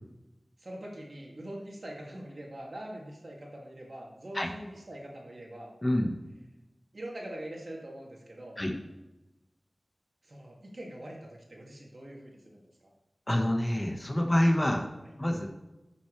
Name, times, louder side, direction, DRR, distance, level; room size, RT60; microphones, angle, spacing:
voice 1, 0.6-5.7 6.9-8.6 10.2-12.6 15.0-15.1, right 1 dB, 60° right, -2 dB, 2.4 m, -43 dB
voice 2, 5.8-6.1 8.6-8.7 13.3-14.8 15.2-15.5, left 1 dB, 25° left, 2 dB, 1.3 m, -26 dB
11.5 x 6.8 x 3.3 m, 1.0 s
wide cardioid pair, 65°, 0 cm